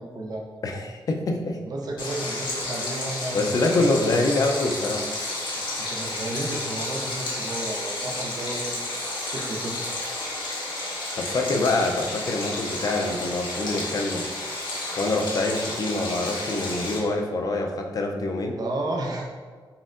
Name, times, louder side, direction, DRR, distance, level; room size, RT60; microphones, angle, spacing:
voice 1, 0.0-0.5 1.5-3.6 5.8-8.8 9.3-9.7 10.1-10.2 18.6-19.3, right 2 dB, 55° right, 1 dB, 0.6 m, -32 dB
voice 2, 0.6-1.6 3.3-5.0 11.2-14.3 15.0-18.6, left 2 dB, 45° left, 2 dB, 0.4 m, -25 dB
Stream, 2.0-17.0, left 2 dB, 70° left, 1.3 m, -31 dB
4.3 x 3.6 x 2.4 m, 1.5 s
wide cardioid pair, 145°, 8 cm